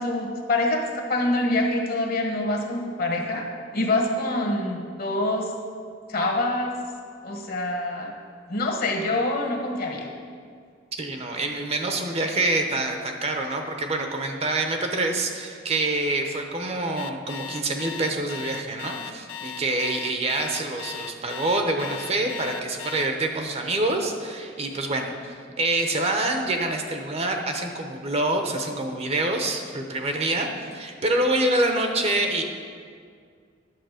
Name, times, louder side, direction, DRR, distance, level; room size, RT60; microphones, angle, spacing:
voice 1, 0.0-3.5 3.7-5.5 6.1-6.8 7.2-8.1 8.5-10.1, left 2 dB, 50° left, 1 dB, 1.4 m, -25 dB
voice 2, 10.9-25.1 25.6-32.4, right 2 dB, 35° right, 4 dB, 0.8 m, -26 dB
Alarm, 17.0-23.1, left 8 dB, 90° left, 0.5 m, -37 dB
10.5 x 7.0 x 5.0 m, 2.1 s
head